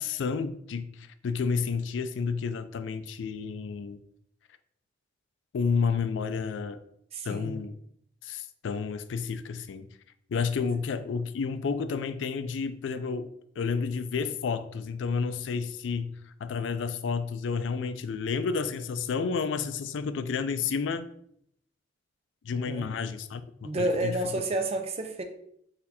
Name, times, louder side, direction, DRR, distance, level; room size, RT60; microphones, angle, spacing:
voice 1, 0.0-4.0 5.5-6.8 7.2-7.8 8.2-9.9 10.3-13.3 13.6-16.1 16.4-21.1 22.4-24.2, left 5 dB, 85° left, 0.4 m, -30 dB
voice 2, 7.1-7.6 22.7-22.9 23.6-25.2, right 2 dB, 35° right, 0.5 m, -30 dB
4.1 x 2.7 x 4.1 m
head